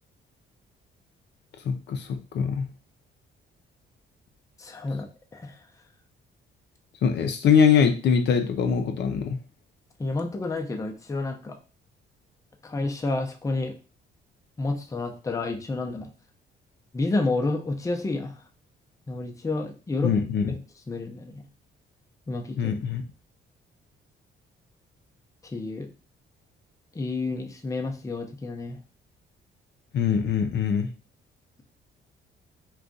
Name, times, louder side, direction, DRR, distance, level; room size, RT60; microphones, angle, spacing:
voice 1, 1.6-2.7 7.0-9.4 20.0-20.5 22.6-23.0 29.9-30.9, left 7 dB, 60° left, 5 dB, 0.5 m, -23 dB
voice 2, 4.6-5.1 5.3-5.6 10.0-11.6 12.6-13.7 14.6-16.1 16.9-18.4 19.1-20.1 20.5-20.6 20.9-21.4 22.3-22.7 25.4-25.9 26.9-28.8, left 2 dB, 15° left, 3 dB, 0.5 m, -30 dB
2.4 x 2.3 x 3.8 m, 0.34 s
cardioid pair, 90°, 20 cm